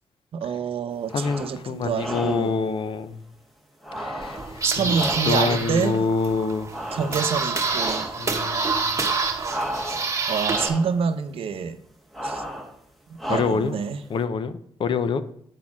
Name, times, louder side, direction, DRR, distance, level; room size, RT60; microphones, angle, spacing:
voice 1, 0.3-2.5 4.6-5.9 6.9-8.0 10.3-11.8 12.2-12.4 13.3-14.0, right 6 dB, 70° right, 0.7 m, -27 dB
voice 2, 1.1-3.2 4.0-6.7 7.0-7.1 8.2-9.0 13.3-13.8 14.1-15.2, left 5 dB, 55° left, 0.6 m, -26 dB
sound 1, 1.1-1.6 2.0-2.6 3.8-5.6 6.7-7.4 7.7-8.3 9.4-10.2 10.4-11.0 12.1-12.7 13.2-13.8, equal, ahead, 1.3 m, -33 dB
sound 2, 4.2-10.7, right 4 dB, 30° right, 1.1 m, -27 dB
8.3 x 4.3 x 5.9 m
cardioid pair, 110°, 10 cm